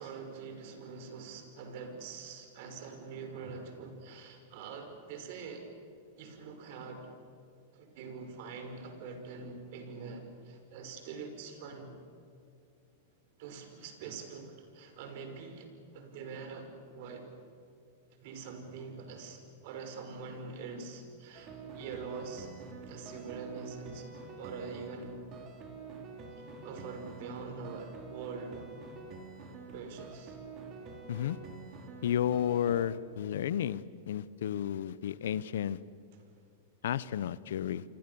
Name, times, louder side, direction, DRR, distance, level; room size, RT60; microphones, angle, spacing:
voice 1, 0.0-5.7 6.2-7.1 7.7-11.9 13.4-17.3 18.2-22.5 22.9-25.2 26.4-28.7 29.7-30.4, right 5 dB, 60° right, 6 dB, 5.5 m, -44 dB
sound 1, 21.3-32.9, right 4 dB, 35° right, 4.6 m, -47 dB
voice 2, 32.0-35.8 36.8-37.8, left 10 dB, 75° left, 18 dB, 0.9 m, -32 dB
30.0 x 25.0 x 7.1 m, 2.4 s
hypercardioid pair, 120°, 0 cm